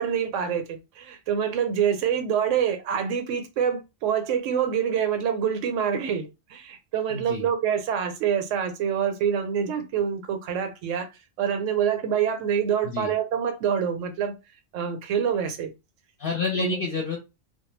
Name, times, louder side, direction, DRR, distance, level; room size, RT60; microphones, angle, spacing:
voice 1, 0.0-11.1 11.4-14.3 14.7-15.7 16.5-16.8, right 8 dB, 80° right, 0.9 m, -26 dB
voice 2, 7.1-7.5 12.8-13.1 16.2-17.2, left 4 dB, 55° left, 0.8 m, -29 dB
2.2 x 2.1 x 3.1 m
omnidirectional pair, 1.3 m